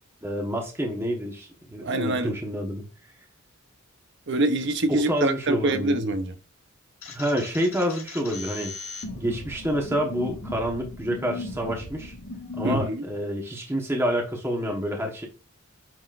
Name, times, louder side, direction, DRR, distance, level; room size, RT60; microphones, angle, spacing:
voice 1, 0.2-2.8 4.9-6.0 7.1-8.7 9.2-12.1 12.5-15.3, equal, 10° right, 1.3 m, -28 dB
voice 2, 1.8-2.4 4.3-6.3 12.6-13.0, right 2 dB, 60° right, 0.9 m, -25 dB
sound 1, 7.0-12.8, left 3 dB, 90° left, 1.7 m, -37 dB
8.9 x 4.2 x 2.6 m
head